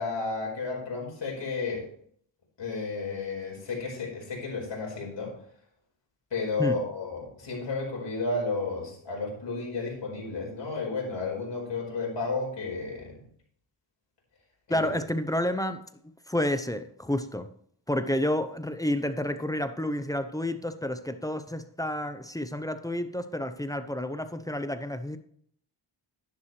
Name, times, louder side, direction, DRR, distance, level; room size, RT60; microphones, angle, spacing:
voice 1, 0.0-1.9 2.6-5.3 6.3-13.2 14.7-14.8, left 3 dB, 55° left, 5.0 m, -32 dB
voice 2, 14.7-15.8 16.3-17.5 17.9-25.2, left 1 dB, 5° left, 0.8 m, -30 dB
11.0 x 10.5 x 3.3 m
cardioid pair, 90°, 49 cm